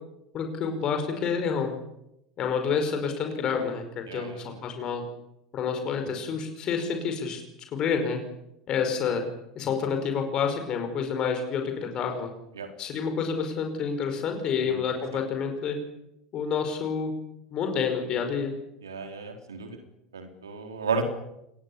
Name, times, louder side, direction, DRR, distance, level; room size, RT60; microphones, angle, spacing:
voice 1, 0.3-1.8 2.4-5.0 5.5-7.4 7.7-8.2 8.7-9.2 9.6-12.3 12.8-15.8 16.3-17.1 17.5-18.5, left 6 dB, 40° left, 5 dB, 5.4 m, -28 dB
voice 2, 4.1-4.4 12.6-12.7 14.6-14.8 18.8-19.8 20.1-21.0, right 5 dB, 75° right, 5 dB, 4.1 m, -33 dB
27.5 x 22.0 x 7.3 m, 0.85 s
figure-of-eight pair, 75°, 2 cm